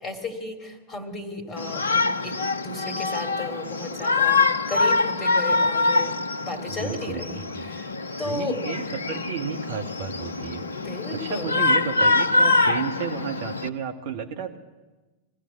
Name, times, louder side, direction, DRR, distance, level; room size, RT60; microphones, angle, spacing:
voice 1, 0.0-4.4 4.7-7.9 8.2-8.6 10.8-11.5, left 3 dB, 20° left, 7 dB, 2.8 m, -34 dB
Shout, 1.6-13.7, left 3 dB, 75° left, 0.8 m, -24 dB
voice 2, 6.7-7.7 8.2-10.7 11.1-14.6, right 7 dB, 50° right, 6 dB, 1.6 m, -32 dB
22.0 x 15.5 x 8.6 m, 1.2 s
figure-of-eight pair, 90°, 0 cm